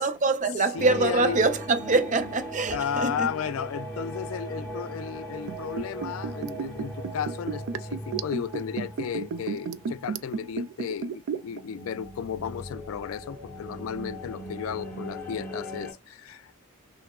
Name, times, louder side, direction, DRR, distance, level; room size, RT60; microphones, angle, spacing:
voice 1, 0.0-3.3, right 3 dB, 35° right, 0.6 m, -24 dB
voice 2, 0.7-1.4 2.1-2.2 2.7-16.6, left 7 dB, 70° left, 0.3 m, -34 dB
sound 1, 0.8-10.9 11.4-15.9, equal, 10° left, 0.9 m, -39 dB
Liquid, 5.4-11.6 11.9-12.0, right 6 dB, 90° right, 0.4 m, -32 dB
5.7 x 2.0 x 2.3 m
head